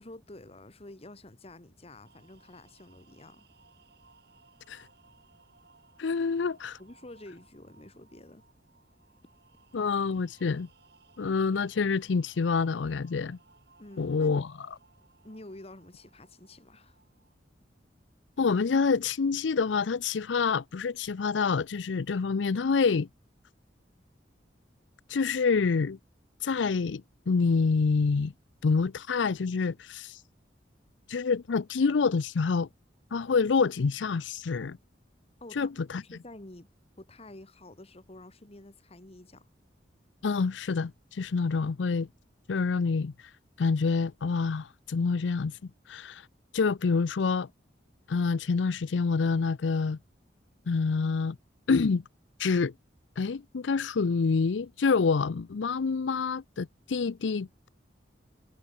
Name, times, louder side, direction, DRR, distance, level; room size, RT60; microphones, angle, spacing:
voice 1, 0.0-3.5 6.8-8.4 13.8-14.4 15.2-17.0 35.4-36.7 37.0-39.5, left 1 dB, 35° left, 1.5 m, -49 dB
sound 1, 2.0-17.4, right 4 dB, 60° right, 4.1 m, -62 dB
voice 2, 6.0-6.8 9.7-10.7 11.2-13.4 14.0-14.5 18.4-23.1 25.1-26.0 26.4-28.3 28.6-30.2 31.1-32.7 33.1-34.8 35.6-36.0 40.2-42.1 42.5-43.1 43.6-46.3 46.5-47.5 48.1-50.0 50.7-51.4 51.7-52.0 52.4-52.7 53.2-57.7, left 4 dB, 90° left, 0.5 m, -27 dB
head